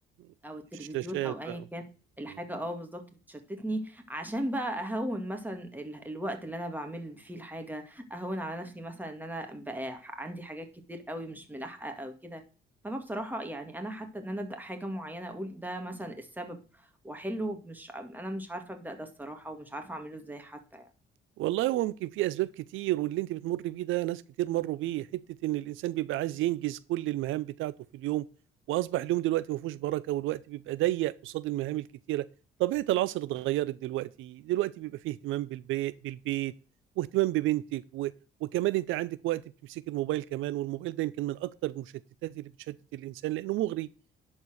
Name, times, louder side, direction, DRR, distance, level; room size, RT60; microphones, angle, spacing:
voice 1, 0.4-1.9 2.2-3.0 3.3-12.4 12.8-20.9, right 1 dB, 10° right, 2.1 m, -37 dB
voice 2, 0.9-1.6 2.3-2.4 21.4-28.3 28.7-32.3 32.6-36.5 37.0-38.1 38.4-41.9 42.2-43.9, right 16 dB, 90° right, 0.5 m, -31 dB
11.0 x 4.5 x 6.4 m
cardioid pair, 90°, 20 cm